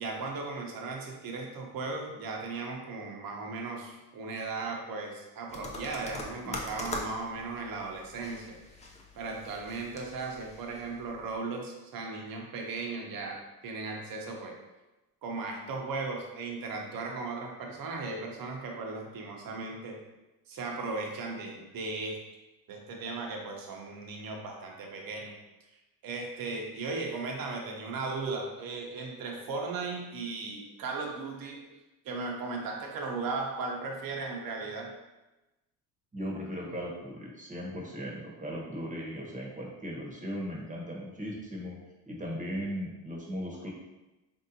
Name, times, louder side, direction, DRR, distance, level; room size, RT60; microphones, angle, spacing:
voice 1, 0.0-8.8 9.2-14.5 15.2-20.0 20.5-22.2 22.7-25.3 26.0-31.6 32.0-34.9, right 3 dB, 50° right, 1 dB, 0.8 m, -37 dB
sound 1, 5.5-11.4, left 1 dB, 15° left, 0.5 m, -43 dB
voice 2, 36.1-41.8 42.1-43.7, equal, 20° right, -2 dB, 0.9 m, -37 dB
3.4 x 2.7 x 2.7 m, 1.0 s
supercardioid pair, 75°, 44 cm